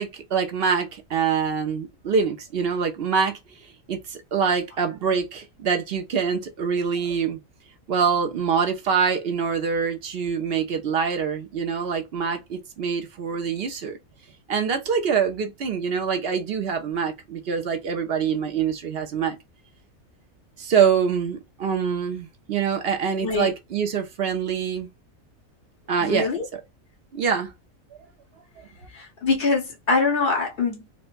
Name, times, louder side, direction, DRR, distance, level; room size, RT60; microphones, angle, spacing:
voice 1, 0.0-3.4 3.9-7.4 7.9-14.0 14.5-19.4 20.6-24.9 25.9-26.6 27.1-27.5, right 6 dB, 55° right, 0.8 m, -25 dB
voice 2, 26.0-26.4 28.9-30.9, left 4 dB, 45° left, 1.4 m, -24 dB
4.4 x 2.1 x 2.5 m
omnidirectional pair, 1.4 m